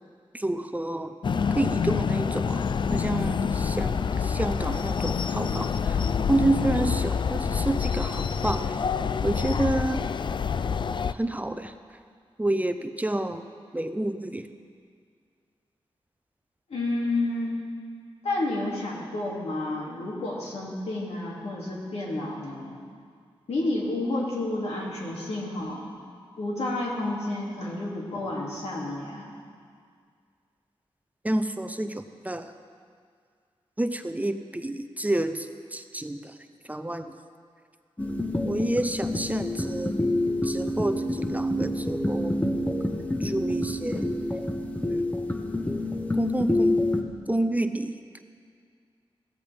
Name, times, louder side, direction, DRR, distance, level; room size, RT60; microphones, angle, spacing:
voice 1, 0.3-1.1 1.6-2.6 2.9-6.0 6.3-8.8 9.2-10.0 11.1-11.7 12.4-13.4 13.7-14.5 31.2-32.5 33.8-36.4 36.7-37.2 38.4-39.9 40.4-42.4 43.2-44.2 44.9-45.1 46.2-46.9 47.3-48.0, right 1 dB, 15° right, 8 dB, 0.6 m, -29 dB
sound 1, 1.2-11.1, left 6 dB, 50° left, 0.4 m, -27 dB
voice 2, 16.7-17.6 18.2-22.8 23.5-25.9 26.4-29.4, left 2 dB, 85° left, -3 dB, 2.5 m, -30 dB
sound 2, 38.0-47.0, left 1 dB, 15° left, 1.1 m, -27 dB
15.5 x 14.0 x 3.5 m, 2.1 s
cardioid pair, 70°, 10 cm